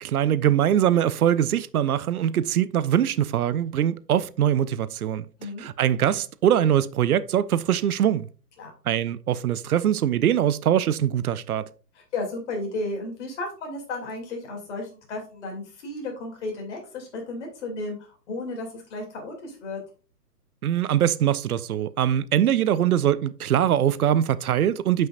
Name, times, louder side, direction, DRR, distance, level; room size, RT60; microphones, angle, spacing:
voice 1, 0.0-5.3 5.6-8.3 8.9-11.7 20.6-25.1, right 10 dB, 60° right, 0.6 m, -22 dB
voice 2, 12.1-19.8, left 2 dB, 45° left, 2.8 m, -33 dB
8.0 x 5.6 x 2.5 m
hypercardioid pair, 145°, 50 cm